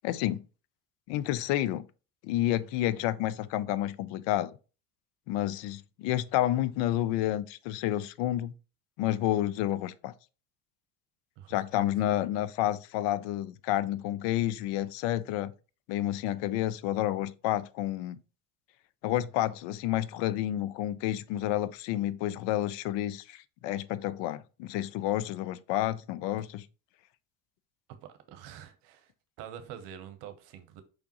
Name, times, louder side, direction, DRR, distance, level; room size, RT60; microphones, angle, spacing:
voice 1, 0.0-0.4 1.1-1.9 2.2-4.5 5.3-8.5 9.0-10.1 11.5-15.5 15.9-18.2 19.0-26.6, left 13 dB, 65° left, 0.6 m, -30 dB
voice 2, 11.4-11.8 28.0-29.1 29.4-30.8, right 9 dB, 65° right, 0.9 m, -46 dB
5.1 x 3.5 x 2.9 m
hypercardioid pair, 75°, 47 cm